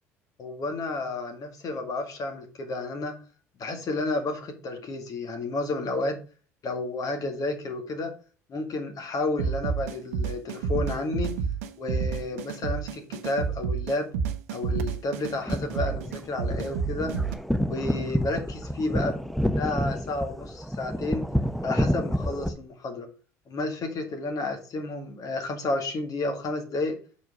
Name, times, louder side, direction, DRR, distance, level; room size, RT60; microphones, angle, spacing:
voice 1, 0.4-3.2 3.6-6.2 6.6-8.1 8.5-11.3 11.8-14.1 14.5-17.1 17.7-19.3 19.6-21.2 21.6-23.1 23.5-27.0, left 2 dB, 45° left, 5 dB, 2.0 m, -31 dB
sound 1, 9.4-17.3, right 6 dB, 75° right, 0.7 m, -30 dB
sound 2, 15.3-22.5, equal, ahead, 0.8 m, -29 dB
6.1 x 4.7 x 6.0 m, 0.38 s
hypercardioid pair, 65°, 8 cm